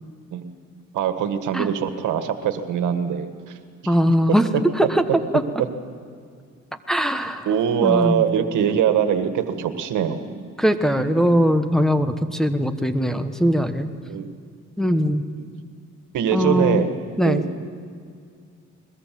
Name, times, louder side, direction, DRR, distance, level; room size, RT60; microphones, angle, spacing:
voice 1, 0.9-3.6 3.8-4.0 4.5-4.6 5.6-5.7 7.5-10.4 11.2-11.3 14.1-14.3 15.4-15.5 16.1-16.9 17.2-17.5, right 8 dB, 85° right, 8 dB, 1.8 m, -22 dB
voice 2, 3.9-4.5 4.7-5.0 5.3-5.4 6.9-7.5 7.8-8.2 10.6-13.9 14.8-15.2 16.3-16.8 17.2-17.4, equal, ahead, 6 dB, 1.3 m, -20 dB
22.0 x 21.5 x 7.7 m, 2.2 s
cardioid pair, 90°, 30 cm